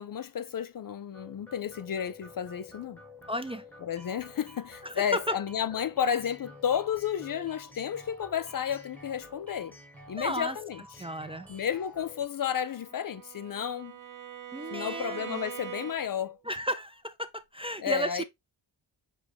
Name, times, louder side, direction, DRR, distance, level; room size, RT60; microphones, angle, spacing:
voice 1, 0.0-3.0 3.8-9.8 10.1-10.8 11.5-13.9 14.7-16.4 17.8-18.2, left 8 dB, 50° left, 0.4 m, -32 dB
sound 1, 1.1-12.3, left 2 dB, 5° left, 1.6 m, -50 dB
voice 2, 3.3-3.6 4.8-5.2 10.2-10.6 11.0-11.5 14.5-15.4 16.4-18.2, equal, 15° right, 0.4 m, -33 dB
Bowed string instrument, 12.5-16.3, right 11 dB, 40° right, 1.0 m, -43 dB
6.3 x 2.3 x 3.4 m
cardioid pair, 65°, 47 cm